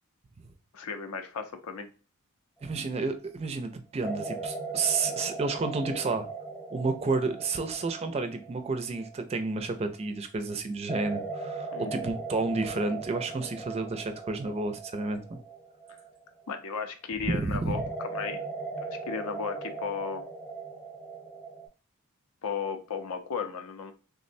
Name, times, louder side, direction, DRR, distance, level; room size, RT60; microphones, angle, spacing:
voice 1, 0.7-1.9 11.7-11.9 16.5-17.8 18.1-18.4 18.8-20.2 22.4-23.9, left 5 dB, 80° left, 6 dB, 0.5 m, -35 dB
voice 2, 2.6-6.3 6.7-15.4 17.3-17.8, right 3 dB, 30° right, 8 dB, 0.4 m, -31 dB
sound 1, 2.7-3.1 4.0-10.0 10.9-16.9 17.7-21.7, right 3 dB, 15° left, 0.6 m, -39 dB
3.5 x 2.1 x 2.5 m, 0.34 s
head